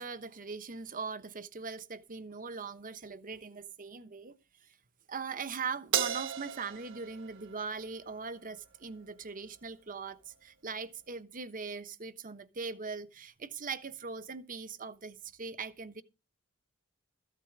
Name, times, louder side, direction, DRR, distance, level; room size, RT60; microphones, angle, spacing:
voice 1, 0.0-4.4 5.1-16.0, right 5 dB, 40° right, 1.1 m, -41 dB
Crash cymbal, 5.9-8.5, right 8 dB, 60° right, 1.7 m, -35 dB
14.5 x 8.4 x 6.0 m
head